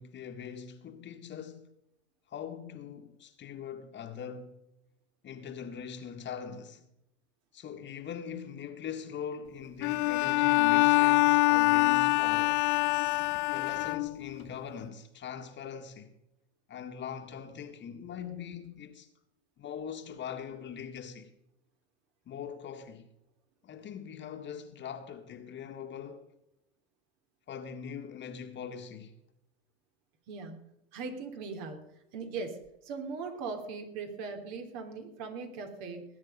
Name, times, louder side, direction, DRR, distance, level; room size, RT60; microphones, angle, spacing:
voice 1, 0.0-1.7 2.3-4.6 5.2-6.8 7.5-12.6 13.5-16.2 16.7-19.1 19.6-21.3 22.3-23.1 23.6-26.3 27.5-29.1, left 7 dB, 35° left, 1.6 m, -42 dB
Bowed string instrument, 9.8-14.4, left 24 dB, 55° left, 0.5 m, -25 dB
voice 2, 30.3-30.6 30.9-31.8 32.1-32.6 32.8-36.0, right 4 dB, 55° right, 3.2 m, -39 dB
19.0 x 9.4 x 5.5 m
hypercardioid pair, 100°, 32 cm